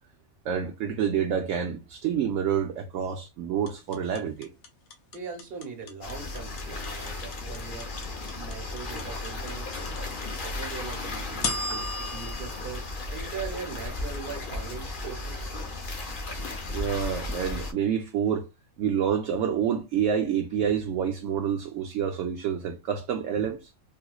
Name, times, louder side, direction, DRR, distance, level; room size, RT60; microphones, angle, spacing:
voice 1, 0.4-4.5 15.0-15.1 16.7-18.5 18.8-23.7, right 8 dB, 70° right, 0.9 m, -28 dB
sound 1, 3.7-13.8, left 3 dB, 85° left, 1.2 m, -36 dB
voice 2, 5.1-7.9 8.3-9.7 10.4-15.5, right 5 dB, 45° right, 1.2 m, -40 dB
sound 2, 6.0-17.7, left 2 dB, 45° left, 0.8 m, -35 dB
3.5 x 2.9 x 2.3 m
omnidirectional pair, 1.4 m